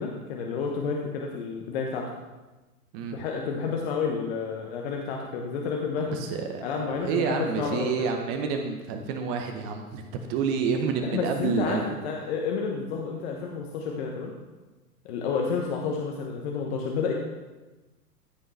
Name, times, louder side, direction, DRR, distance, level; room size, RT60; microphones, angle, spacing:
voice 1, 0.0-2.1 3.1-6.2 6.6-8.1 11.0-14.3 15.0-17.1, left 5 dB, 45° left, 0 dB, 1.1 m, -30 dB
voice 2, 6.1-11.8, right 6 dB, 30° right, 4 dB, 0.8 m, -29 dB
14.5 x 5.6 x 3.3 m, 1.1 s
figure-of-eight pair, 105°, 45 cm